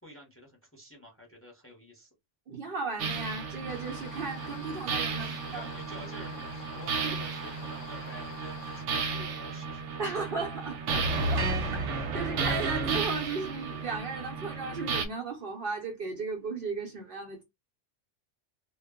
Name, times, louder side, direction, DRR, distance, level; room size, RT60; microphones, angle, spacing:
voice 1, 0.0-2.1 5.2-10.0, equal, 15° left, 0.7 m, -49 dB
voice 2, 2.5-5.7 7.0-7.2 10.0-11.0 11.3-17.4, right 4 dB, 55° right, 0.7 m, -36 dB
sound 1, 3.0-15.1, right 4 dB, 85° right, 0.9 m, -33 dB
sound 2, 3.7-8.9, left 6 dB, 60° left, 0.7 m, -48 dB
2.2 x 2.0 x 3.5 m
omnidirectional pair, 1.2 m